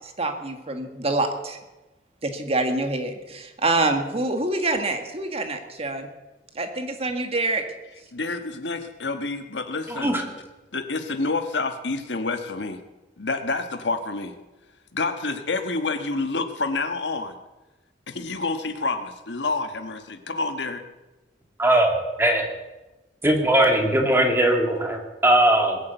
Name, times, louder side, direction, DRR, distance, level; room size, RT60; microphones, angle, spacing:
voice 1, 0.0-1.6 2.2-6.1 6.6-7.6, right 2 dB, 35° right, 6 dB, 1.7 m, -26 dB
voice 2, 8.1-10.1 10.7-12.8 13.2-14.3 14.9-17.3 18.1-20.8, left 3 dB, 75° left, 8 dB, 1.3 m, -28 dB
voice 3, 9.9-10.2 21.6-22.4 23.2-25.8, right 1 dB, 15° right, 2 dB, 2.5 m, -20 dB
20.5 x 8.2 x 8.1 m, 1.1 s
head